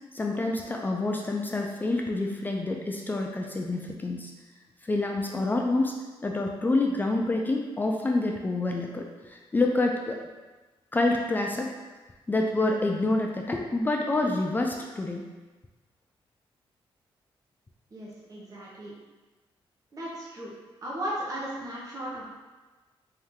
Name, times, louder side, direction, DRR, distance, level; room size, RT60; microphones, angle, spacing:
voice 1, 0.1-4.3 4.8-5.9 6.2-10.2 10.9-11.7 12.3-15.3, left 2 dB, 20° left, 1 dB, 0.4 m, -27 dB
voice 2, 17.9-18.9 19.9-20.5 20.8-22.3, equal, 40° right, -6 dB, 1.0 m, -36 dB
4.4 x 2.7 x 3.7 m, 1.2 s
cardioid pair, 115°, 10 cm